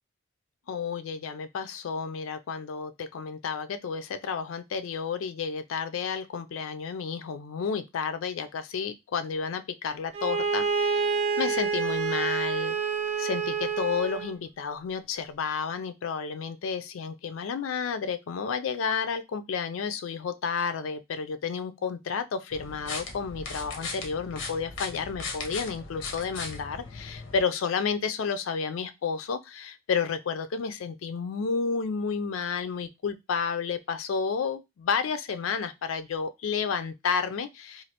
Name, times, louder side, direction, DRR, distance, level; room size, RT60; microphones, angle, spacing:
voice 1, 0.7-12.8 13.2-37.8, left 6 dB, 90° left, 0.4 m, -31 dB
Bowed string instrument, 10.1-14.3, right 6 dB, 30° right, 0.4 m, -28 dB
sound 1, 22.5-27.4, left 4 dB, 70° left, 0.7 m, -38 dB
3.1 x 2.4 x 2.8 m
head